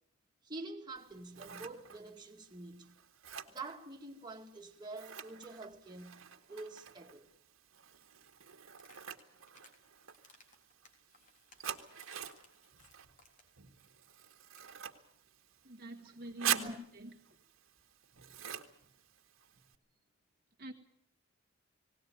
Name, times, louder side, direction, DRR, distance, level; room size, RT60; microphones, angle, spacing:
voice 1, 0.4-2.9 3.5-7.3 16.5-16.8 18.1-18.4 19.5-19.6, right 2 dB, 20° right, 2.2 m, -47 dB
Scissors, 1.0-19.7, right 9 dB, 85° right, 1.7 m, -45 dB
sound 1, 8.8-9.8 10.1-13.6 13.9-14.0 14.2-14.3 14.5-14.7, left 3 dB, 40° left, 3.6 m, -63 dB
voice 2, 15.6-17.4 20.6-20.7, right 1 dB, 50° right, 1.4 m, -47 dB
19.0 x 18.5 x 9.3 m
head